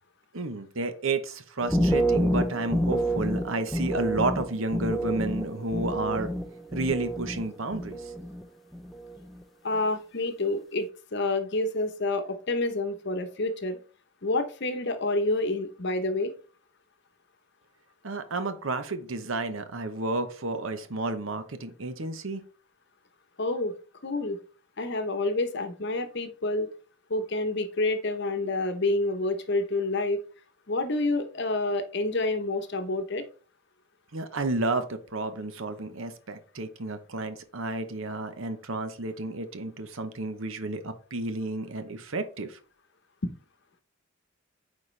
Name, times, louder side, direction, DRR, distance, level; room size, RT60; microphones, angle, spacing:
voice 1, 0.3-6.3 6.7-8.1 18.0-22.4 34.1-42.6, right 2 dB, 65° right, 9 dB, 0.9 m, -31 dB
sound 1, 1.6-7.4 7.7-8.4 8.7-9.2, right 1 dB, ahead, 0.5 m, -28 dB
voice 2, 9.6-13.8 14.2-16.3 23.4-23.7 24.0-24.4 24.8-26.7 27.1-30.2 30.7-33.2, left 2 dB, 50° left, 7 dB, 0.9 m, -28 dB
9.1 x 4.2 x 3.3 m, 0.39 s
head